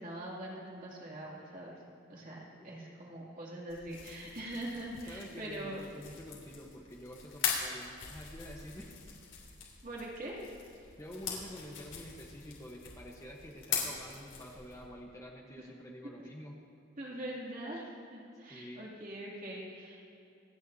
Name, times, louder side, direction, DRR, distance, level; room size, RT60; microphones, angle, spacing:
voice 1, 0.0-1.7 2.1-5.8 9.8-10.5 15.6-15.7 16.0-16.1 17.0-17.8 18.1-20.1, right 1 dB, 45° right, -4 dB, 2.6 m, -43 dB
sound 1, 3.7-14.9, left 6 dB, 70° left, 3.2 m, -42 dB
voice 2, 5.1-9.0 11.0-16.5 18.5-18.9, equal, 15° left, -1 dB, 1.0 m, -48 dB
27.0 x 9.9 x 2.8 m, 2.7 s
head